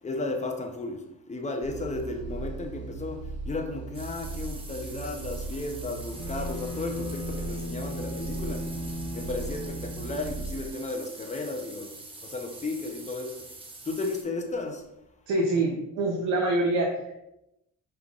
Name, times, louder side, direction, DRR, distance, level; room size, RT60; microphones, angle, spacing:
voice 1, 0.0-8.7 9.1-11.9 12.2-13.5 13.8-14.8, left 2 dB, 25° left, 0.7 m, -34 dB
sound 1, 1.6-10.7, right 3 dB, 40° right, 0.4 m, -38 dB
sound 2, 3.9-14.2, right 2 dB, 20° right, 0.7 m, -45 dB
Bowed string instrument, 6.1-10.6, left 1 dB, 65° left, 0.7 m, -37 dB
voice 2, 15.3-17.2, right 2 dB, 80° right, 0.8 m, -26 dB
5.2 x 3.3 x 2.4 m
cardioid pair, 90°, 30 cm